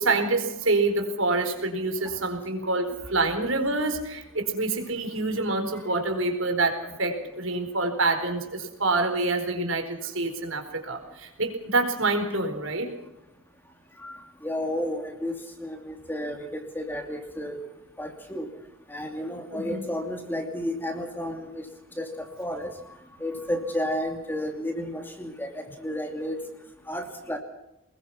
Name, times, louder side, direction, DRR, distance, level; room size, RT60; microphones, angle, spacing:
voice 1, 0.0-12.9 19.5-19.8, right 3 dB, 70° right, 5 dB, 4.3 m, -27 dB
voice 2, 14.4-15.3 15.6-17.6 18.0-18.5 18.9-21.6 22.0-22.1 22.4-22.7 23.2-26.4 26.9-27.4, left 1 dB, 10° left, 4 dB, 2.6 m, -32 dB
24.0 x 21.0 x 5.8 m, 0.91 s
head